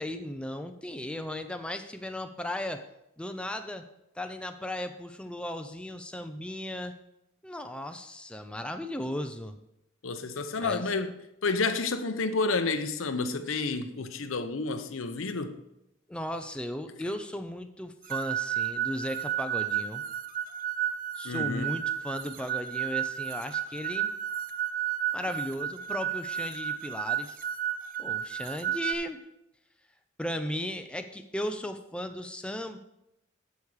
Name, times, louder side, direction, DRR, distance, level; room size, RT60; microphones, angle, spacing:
voice 1, 0.0-2.8 3.2-3.8 4.2-6.9 7.4-9.6 10.6-10.9 16.1-20.0 21.2-24.1 25.1-27.4 28.0-29.2 30.2-32.8, left 1 dB, 5° left, 0.5 m, -36 dB
voice 2, 10.0-11.1 11.4-15.6 21.2-21.7, left 3 dB, 80° left, 0.7 m, -30 dB
sound 1, 18.1-28.9, right 10 dB, 45° right, 0.5 m, -32 dB
8.1 x 7.2 x 4.8 m
head